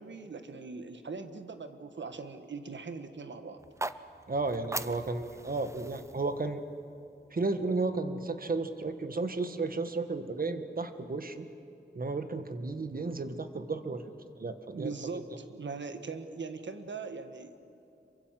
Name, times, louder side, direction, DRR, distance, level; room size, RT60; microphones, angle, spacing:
voice 1, 0.0-3.6 14.7-17.5, right 4 dB, 75° right, 8 dB, 1.6 m, -40 dB
sound 1, 3.6-7.7, right 2 dB, 15° right, 0.6 m, -42 dB
voice 2, 4.3-6.6 7.3-11.4 11.9-15.2, right 3 dB, 50° right, 9 dB, 1.5 m, -33 dB
26.5 x 23.5 x 7.6 m, 2.8 s
wide cardioid pair, 110°, 19 cm